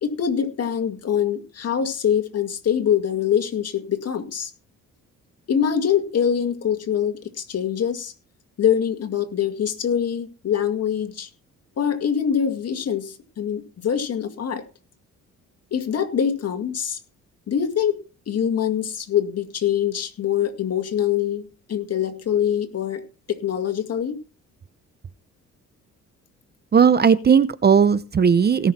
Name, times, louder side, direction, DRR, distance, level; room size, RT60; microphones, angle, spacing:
voice 1, 0.0-4.5 5.5-8.1 8.6-11.3 11.8-14.6 15.7-17.0 17.5-18.0 18.3-24.2, left 8 dB, 55° left, 7 dB, 2.1 m, -24 dB
voice 2, 26.7-28.7, right 6 dB, 35° right, 16 dB, 0.7 m, -16 dB
18.0 x 6.3 x 4.3 m, 0.33 s
cardioid pair, 90°, 30 cm